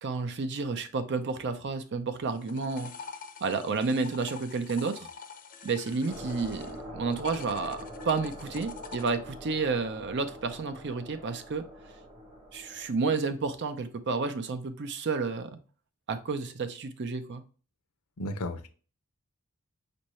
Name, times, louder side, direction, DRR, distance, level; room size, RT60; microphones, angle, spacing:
voice 1, 0.0-2.9 3.4-5.1 5.6-11.6 12.5-15.6 16.1-17.4, right 4 dB, 55° right, 9 dB, 0.5 m, -31 dB
sound 1, 2.2-6.8 7.1-9.1, left 6 dB, 40° left, 0.5 m, -46 dB
sound 2, 6.1-12.9, equal, 20° right, 1.0 m, -44 dB
voice 2, 18.2-18.7, left 1 dB, 80° left, 8 dB, 0.6 m, -34 dB
5.3 x 2.6 x 3.0 m, 0.38 s
head